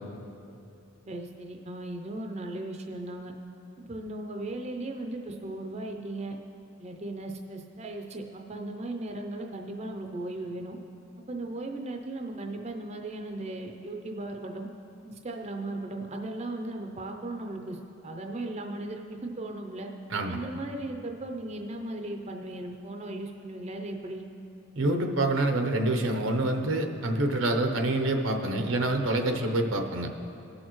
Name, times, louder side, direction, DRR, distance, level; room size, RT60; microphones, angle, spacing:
voice 1, 1.1-3.3 3.8-6.4 6.8-10.8 11.3-14.7 15.0-19.9 20.3-24.2, right 2 dB, 35° right, 3 dB, 0.5 m, -37 dB
voice 2, 24.7-30.1, right 2 dB, 75° right, 4 dB, 0.8 m, -26 dB
19.0 x 6.4 x 3.1 m, 2.6 s
head